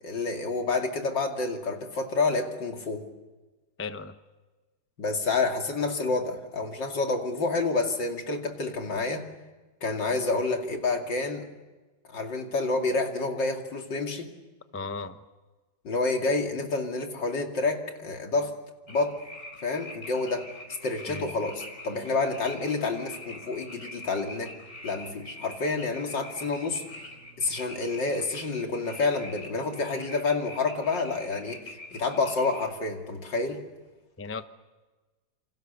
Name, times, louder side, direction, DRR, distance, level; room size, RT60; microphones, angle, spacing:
voice 1, 0.0-3.1 5.0-9.3 9.8-11.5 12.1-14.3 15.8-18.5 18.9-19.2 19.6-20.5 20.8-24.5 24.8-26.8 27.4-33.6, left 3 dB, 70° left, 3 dB, 3.2 m, -29 dB
voice 2, 3.8-4.1 14.7-15.2 21.1-21.3 34.2-34.4, left 4 dB, 20° left, 10 dB, 0.3 m, -35 dB
sound 1, 18.9-32.7, left 1 dB, 40° left, 4.9 m, -44 dB
28.0 x 27.0 x 6.8 m, 1.2 s
omnidirectional pair, 2.1 m